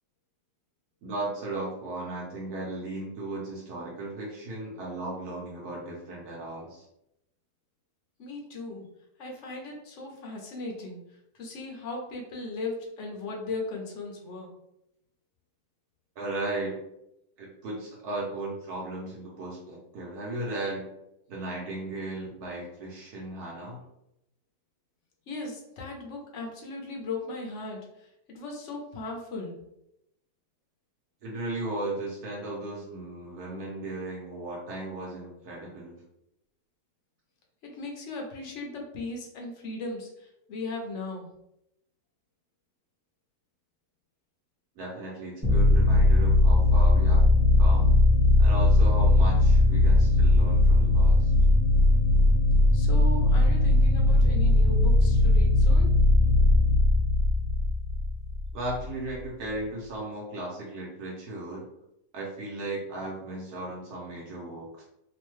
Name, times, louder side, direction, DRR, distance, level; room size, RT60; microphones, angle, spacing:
voice 1, 1.0-6.8 16.2-16.8 17.4-20.9 21.3-23.8 31.2-36.0 44.8-47.3 47.6-48.0 48.4-51.3 58.5-61.7 62.1-64.8, right 2 dB, 75° right, -4 dB, 1.2 m, -36 dB
voice 2, 8.2-8.9 9.2-14.5 25.3-29.6 37.6-41.3 52.7-56.0, left 3 dB, 60° left, 0 dB, 0.9 m, -37 dB
sound 1, 45.4-58.9, left 2 dB, 5° left, 0.7 m, -20 dB
3.1 x 2.2 x 3.0 m, 0.82 s
omnidirectional pair, 1.7 m